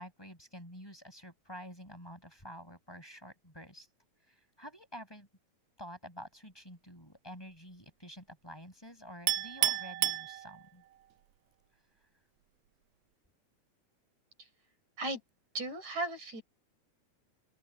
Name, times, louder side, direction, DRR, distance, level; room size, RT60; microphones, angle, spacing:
voice 1, 0.0-3.9 4.3-5.3 5.8-10.8, equal, 5° left, 8.0 m, -49 dB
Chink clink, 9.3-10.9, right 15 dB, 85° right, 2.2 m, -31 dB
voice 2, 15.5-16.4, right 2 dB, 70° right, 8.1 m, -36 dB
open air
omnidirectional pair, 3.4 m